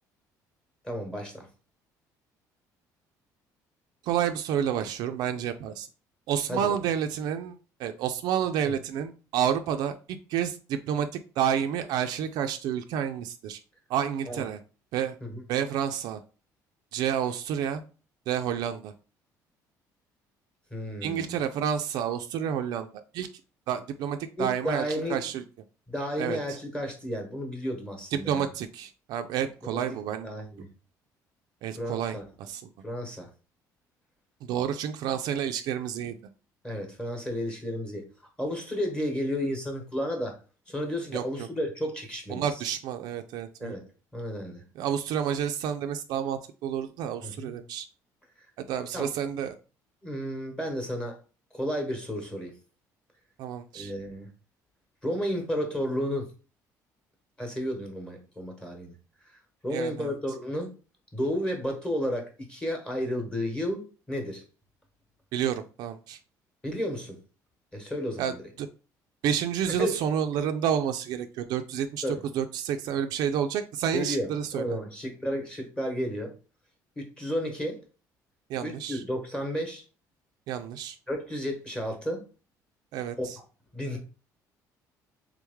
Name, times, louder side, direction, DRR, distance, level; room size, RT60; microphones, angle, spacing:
voice 1, 0.8-1.5 6.5-6.7 8.6-8.7 14.3-14.4 15.2-15.4 20.7-21.4 24.4-25.2 25.9-28.4 29.6-29.8 30.2-30.7 31.8-32.2 32.8-33.3 36.6-38.0 38.4-40.4 40.7-42.6 43.6-43.8 44.1-44.6 47.2-47.5 48.9-49.1 50.0-51.2 51.5-52.6 53.7-54.3 55.0-56.3 57.4-58.9 59.2-59.4 59.6-60.7 61.1-64.4 66.6-67.2 67.7-68.4 69.7-70.0 72.0-72.2 73.9-76.3 77.0-77.8 78.6-79.8 81.1-82.2 83.2-83.3 83.7-84.0, equal, 10° left, 3 dB, 1.0 m, -32 dB
voice 2, 4.0-5.9 6.3-11.1 11.4-13.6 13.9-14.6 14.9-15.2 15.5-16.2 16.9-17.8 18.3-18.9 21.0-23.3 23.7-25.4 26.2-26.4 28.1-30.3 31.6-32.7 34.4-36.2 41.1-41.2 42.3-43.7 44.8-47.9 48.6-49.6 53.4-53.9 59.7-60.1 65.3-66.2 68.2-68.7 69.2-74.8 78.5-79.0 80.5-81.0 82.9-83.4, right 9 dB, 70° right, 7 dB, 0.4 m, -30 dB
3.6 x 3.1 x 3.4 m, 0.34 s
cardioid pair, 150°, 7 cm